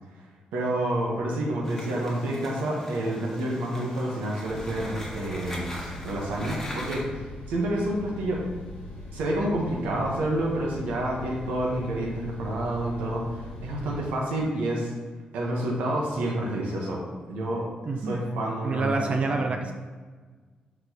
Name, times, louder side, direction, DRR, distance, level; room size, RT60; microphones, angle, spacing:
voice 1, 0.5-5.8 6.0-8.4 9.1-14.9 15.3-17.0 17.3-17.7 18.0-19.5, right 1 dB, 90° right, -2 dB, 0.7 m, -29 dB
sound 1, 1.6-7.0, equal, 15° left, 1.1 m, -40 dB
sound 2, 4.5-14.0, left 1 dB, 80° left, 1.3 m, -41 dB
voice 2, 17.9-18.2 18.6-19.7, right 3 dB, 45° right, 4 dB, 0.5 m, -28 dB
4.3 x 4.1 x 2.7 m, 1.4 s
cardioid pair, 70°, 3 cm